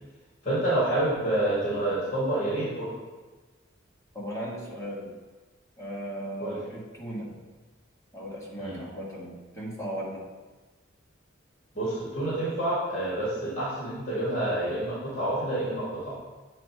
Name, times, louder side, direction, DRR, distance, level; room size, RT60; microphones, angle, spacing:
voice 1, 0.4-2.9 6.4-6.6 8.6-8.8 11.7-16.2, right 1 dB, 35° left, -9 dB, 2.0 m, -28 dB
voice 2, 4.1-5.1 5.8-7.5 8.1-10.2, equal, 15° left, -6 dB, 1.5 m, -37 dB
8.3 x 3.4 x 4.6 m, 1.3 s
head